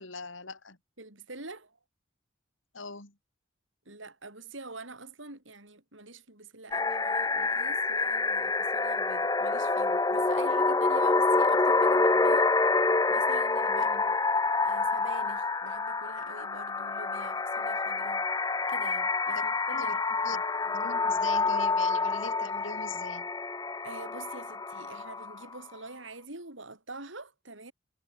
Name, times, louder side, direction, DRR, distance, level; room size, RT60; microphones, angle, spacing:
voice 1, 0.0-0.8 2.7-3.1 19.3-19.4 19.7-20.0 20.2-20.4 20.6-23.3, left 4 dB, 85° left, 4.7 m, -42 dB
voice 2, 1.0-1.8 3.9-12.5 13.1-14.2 14.6-18.3 18.7-20.4 23.8-27.7, right 3 dB, 80° right, 7.0 m, -46 dB
sound 1, 6.7-25.6, left 3 dB, 20° left, 0.6 m, -27 dB
head